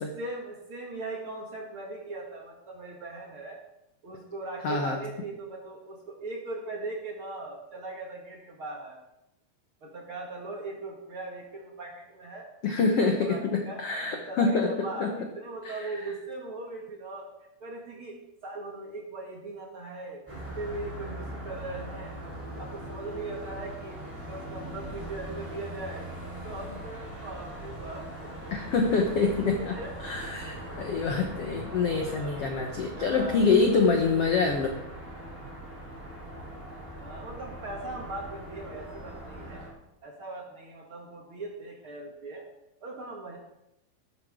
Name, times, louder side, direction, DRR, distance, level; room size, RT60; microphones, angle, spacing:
voice 1, 0.2-3.6 4.0-9.0 9.8-12.5 12.9-17.3 17.6-18.2 18.4-22.2 22.6-24.0 24.3-26.2 26.4-28.1 29.7-29.9 31.9-32.6 33.0-33.9 36.9-39.6 40.0-42.4 42.8-43.4, right 2 dB, 40° right, -1 dB, 2.3 m, -39 dB
voice 2, 4.6-5.0 12.6-15.1 15.6-16.0 28.5-34.7, left 4 dB, 65° left, 3 dB, 1.5 m, -26 dB
sound 1, 20.3-39.7, right 1 dB, 5° right, 3.7 m, -41 dB
15.0 x 12.0 x 3.7 m, 0.85 s
omnidirectional pair, 4.3 m